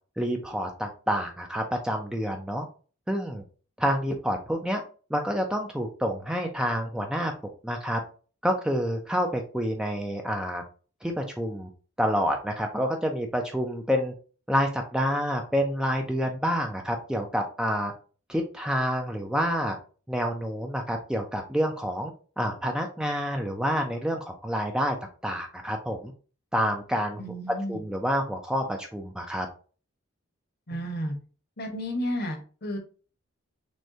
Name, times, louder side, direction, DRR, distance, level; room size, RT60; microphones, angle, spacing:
voice 1, 0.2-2.7 3.1-3.4 3.8-4.8 5.1-7.3 7.6-8.0 8.4-10.6 11.0-11.7 12.0-14.1 14.5-17.9 18.3-19.8 20.1-22.1 22.4-25.0 25.2-26.1 26.5-27.2 27.7-29.5 30.7-30.8, equal, 5° right, 3 dB, 0.4 m, -28 dB
voice 2, 27.2-27.8 30.7-31.2 31.6-32.8, equal, 50° left, 4 dB, 1.0 m, -32 dB
6.2 x 2.3 x 2.7 m, 0.38 s
head